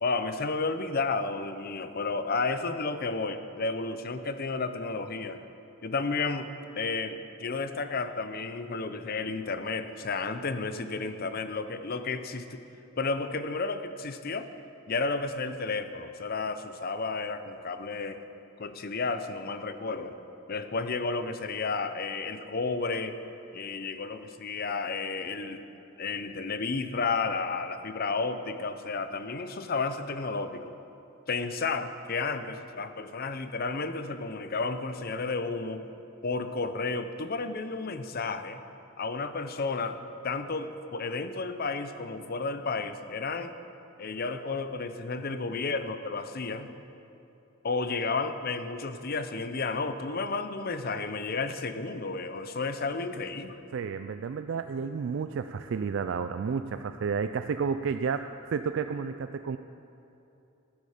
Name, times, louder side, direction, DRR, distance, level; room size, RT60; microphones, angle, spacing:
voice 1, 0.0-5.5 5.8-6.5 6.8-12.6 13.0-14.5 14.9-18.2 18.6-20.2 20.5-23.2 23.5-25.6 26.0-30.7 31.3-35.8 36.2-38.6 39.0-40.0 40.2-43.5 44.0-46.7 47.6-53.6, left 4 dB, 45° left, 10 dB, 0.7 m, -32 dB
voice 2, 53.7-59.6, right 6 dB, 60° right, 9 dB, 0.3 m, -31 dB
14.0 x 12.5 x 5.0 m, 2.9 s
head